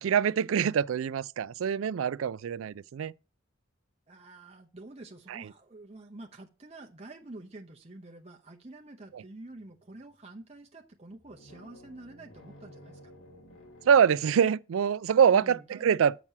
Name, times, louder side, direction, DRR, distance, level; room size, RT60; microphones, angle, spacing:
voice 1, 0.0-3.1 5.3-5.4 9.1-9.2 13.9-16.2, right 7 dB, 80° right, 0.3 m, -25 dB
voice 2, 4.1-13.1 15.3-16.0, right 2 dB, 30° right, 0.7 m, -48 dB
sound 1, 9.1-9.2 9.6-10.2 10.9-14.1, left 1 dB, 70° left, 1.5 m, -53 dB
7.3 x 6.1 x 5.4 m
head